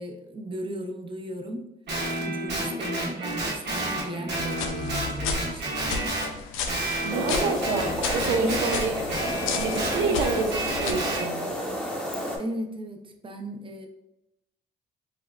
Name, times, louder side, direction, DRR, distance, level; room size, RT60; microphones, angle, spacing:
voice 1, 0.0-1.7 2.1-6.1 7.1-7.5 8.4-8.7 9.9-10.2 12.4-13.9, right 1 dB, 25° right, 4 dB, 0.5 m, -35 dB
Guitar, 1.9-6.3 6.7-11.2, right 1 dB, 60° right, 1.3 m, -30 dB
sound 1, 4.4-10.9, left 5 dB, 90° left, 0.5 m, -34 dB
voice 2, 7.0-9.0 9.6-11.4, right 4 dB, 85° right, 4 dB, 0.5 m, -28 dB
sound 2, 7.1-12.4, left 1 dB, 5° left, 0.9 m, -31 dB
4.9 x 2.0 x 2.4 m, 0.89 s
cardioid pair, 90°, 20 cm